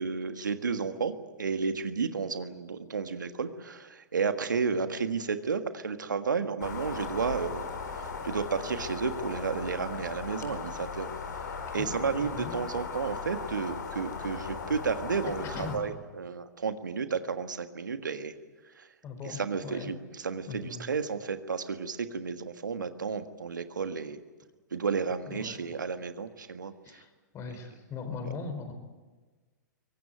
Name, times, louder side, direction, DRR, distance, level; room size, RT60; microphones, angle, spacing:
voice 1, 0.0-7.7 7.9-11.1 11.7-18.3 18.8-18.9 19.2-24.2 24.7-27.0, right 5 dB, 85° right, 9 dB, 1.6 m, -32 dB
sound 1, 6.6-15.8, left 5 dB, 75° left, 4.4 m, -38 dB
voice 2, 12.2-12.6 15.5-15.9 19.0-19.9 20.4-20.8 25.3-25.6 26.8-28.7, left 4 dB, 30° left, 7 dB, 4.8 m, -40 dB
23.5 x 18.5 x 9.5 m, 1.3 s
hypercardioid pair, 110°, 10 cm